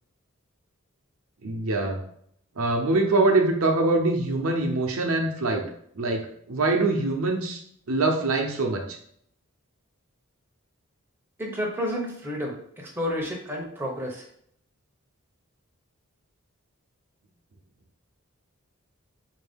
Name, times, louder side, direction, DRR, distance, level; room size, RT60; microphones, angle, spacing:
voice 1, 1.4-2.0 2.6-5.6 6.0-7.6 7.9-9.0, right 2 dB, 70° right, 2 dB, 0.6 m, -24 dB
voice 2, 11.4-14.3, equal, 10° right, -2 dB, 0.6 m, -31 dB
4.2 x 2.6 x 3.5 m, 0.68 s
head